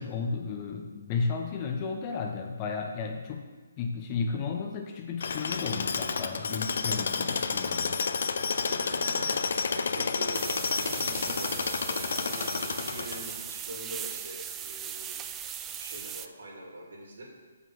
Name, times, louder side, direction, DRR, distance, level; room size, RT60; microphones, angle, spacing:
voice 1, 0.0-3.4 3.8-8.0, left 5 dB, 25° left, 3 dB, 0.9 m, -33 dB
Tools, 5.2-13.5, left 5 dB, 65° left, 0.6 m, -30 dB
voice 2, 8.6-15.3 15.6-17.2, right 1 dB, 70° right, -2 dB, 3.0 m, -44 dB
sound 1, 10.3-16.3, right 9 dB, 15° right, 0.3 m, -39 dB
7.5 x 6.0 x 5.6 m, 1.3 s
hypercardioid pair, 155°, 0 cm